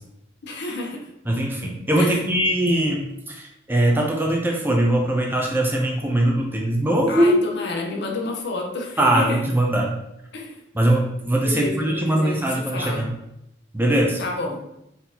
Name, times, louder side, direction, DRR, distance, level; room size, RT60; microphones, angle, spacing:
voice 1, 0.4-1.1 2.0-2.2 7.1-9.4 10.3-10.6 11.4-13.1 14.2-14.6, left 2 dB, 60° left, 1 dB, 0.7 m, -30 dB
voice 2, 1.3-7.4 9.0-9.9 10.7-13.1 13.7-14.2, right 1 dB, 10° right, 0 dB, 0.5 m, -21 dB
4.2 x 3.7 x 2.8 m, 0.84 s
head